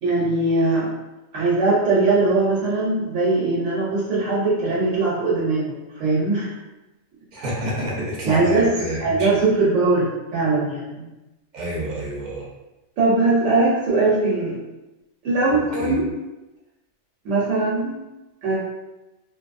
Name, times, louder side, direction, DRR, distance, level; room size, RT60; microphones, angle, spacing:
voice 1, 0.0-0.9 1.3-6.5 8.3-8.7 9.0-11.1 13.0-14.6 15.2-16.0 17.2-18.0 18.4-18.6, right 3 dB, 70° right, -7 dB, 1.0 m, -20 dB
voice 2, 7.3-9.3 11.5-12.4 15.5-15.9, right 1 dB, 45° right, -5 dB, 0.7 m, -29 dB
2.8 x 2.2 x 2.5 m, 1.0 s
omnidirectional pair, 1.4 m